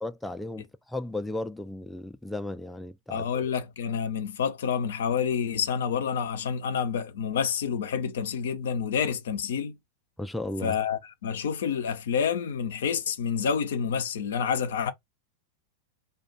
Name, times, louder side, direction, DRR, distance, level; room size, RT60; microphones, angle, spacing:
voice 1, 0.0-3.3 10.2-10.8, left 1 dB, 5° left, 0.3 m, -35 dB
voice 2, 3.1-9.7 10.6-14.9, left 7 dB, 70° left, 0.5 m, -28 dB
2.4 x 2.2 x 3.9 m
figure-of-eight pair, 95°, 0 cm